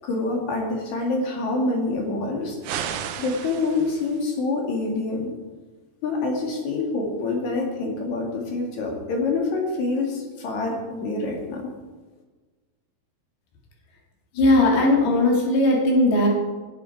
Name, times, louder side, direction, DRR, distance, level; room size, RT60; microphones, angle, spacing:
voice 1, 0.0-2.8 3.1-5.3 6.0-11.7, left 3 dB, 55° left, 1 dB, 3.2 m, -26 dB
sound 1, 2.6-4.2, right 9 dB, 75° right, 2.0 m, -33 dB
voice 2, 14.3-16.3, left 1 dB, 85° left, -1 dB, 4.4 m, -18 dB
19.0 x 8.1 x 4.6 m, 1.3 s
omnidirectional pair, 4.4 m